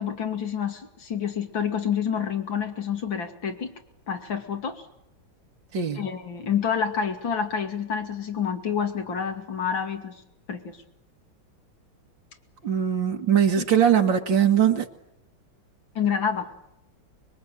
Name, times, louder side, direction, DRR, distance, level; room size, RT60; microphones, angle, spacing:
voice 1, 0.0-3.7 4.1-4.8 5.9-10.1 10.5-10.8 13.6-13.7 15.9-16.5, left 7 dB, 70° left, 3.2 m, -28 dB
voice 2, 5.7-6.0 12.6-14.9, right 9 dB, 70° right, 2.5 m, -21 dB
25.5 x 22.5 x 9.1 m
omnidirectional pair, 2.2 m